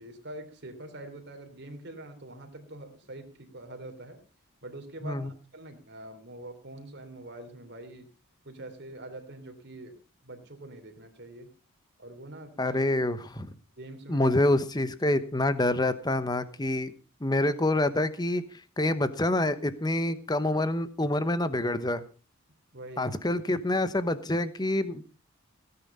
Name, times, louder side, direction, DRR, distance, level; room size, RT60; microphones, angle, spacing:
voice 1, 0.0-4.2 4.6-8.1 8.4-9.9 10.2-11.5 12.0-12.8 13.8-14.3 22.7-23.2, right 1 dB, 55° right, 6 dB, 3.3 m, -44 dB
voice 2, 12.6-13.5 14.1-16.9 17.2-18.4 18.8-22.0 23.0-25.1, left 1 dB, 20° left, 13 dB, 1.1 m, -27 dB
17.0 x 9.9 x 5.5 m, 0.36 s
head